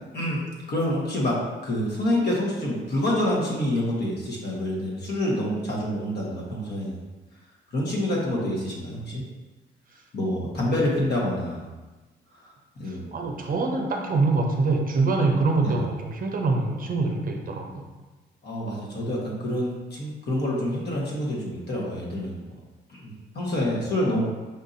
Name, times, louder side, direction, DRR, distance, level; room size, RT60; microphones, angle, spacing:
voice 1, 0.1-6.9 7.7-9.2 10.1-11.6 12.4-12.5 12.8-13.2 15.6-15.8 18.4-22.5 22.9-24.2, left 1 dB, 55° left, -4 dB, 1.2 m, -27 dB
voice 2, 13.1-17.8, right 3 dB, 45° right, 2 dB, 0.6 m, -24 dB
5.4 x 2.6 x 2.6 m, 1.2 s
cardioid pair, 90°, 20 cm